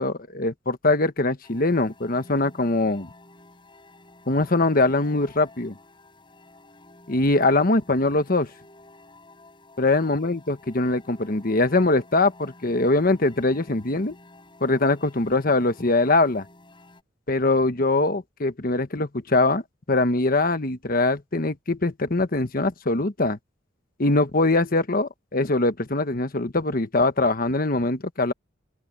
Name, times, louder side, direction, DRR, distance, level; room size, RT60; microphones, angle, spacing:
voice 1, 0.0-3.1 4.3-5.8 7.1-8.5 9.8-14.2 14.6-16.4 17.3-19.6 19.9-23.4 24.0-28.3, left 2 dB, 50° left, 1.3 m, -22 dB
sound 1, 1.4-17.0, left 2 dB, 25° left, 4.5 m, -51 dB
open air
head